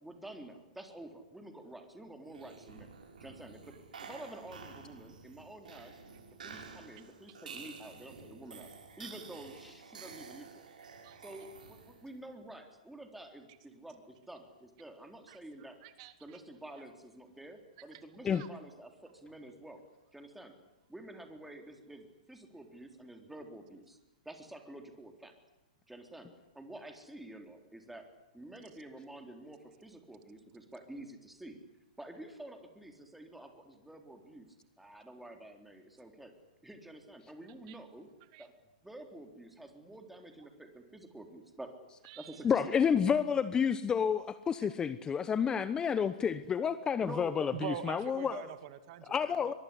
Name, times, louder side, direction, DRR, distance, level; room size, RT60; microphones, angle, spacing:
voice 1, 0.0-2.9 3.2-3.8 4.0-6.0 6.4-8.7 9.0-10.7 11.2-15.8 16.2-19.8 20.1-20.6 20.9-24.0 24.2-25.3 25.9-26.3 26.5-28.1 28.3-31.6 32.0-34.5 34.8-36.3 36.6-38.1 38.4-38.5 38.8-41.7 42.2-43.0 47.0-47.5, right 1 dB, 5° right, 4 dB, 3.9 m, -49 dB
sound 1, 2.3-12.2, right 5 dB, 80° right, 7.7 m, -50 dB
voice 2, 15.8-16.4 17.9-18.0 18.3-18.5 37.7-37.8 38.3-38.5 42.0-42.4 47.5-49.5, right 11 dB, 45° right, 10 dB, 2.4 m, -44 dB
voice 3, 42.4-48.4 49.1-49.5, left 7 dB, 15° left, 14 dB, 1.0 m, -30 dB
23.5 x 22.5 x 10.0 m, 0.94 s
hypercardioid pair, 130°, 4 cm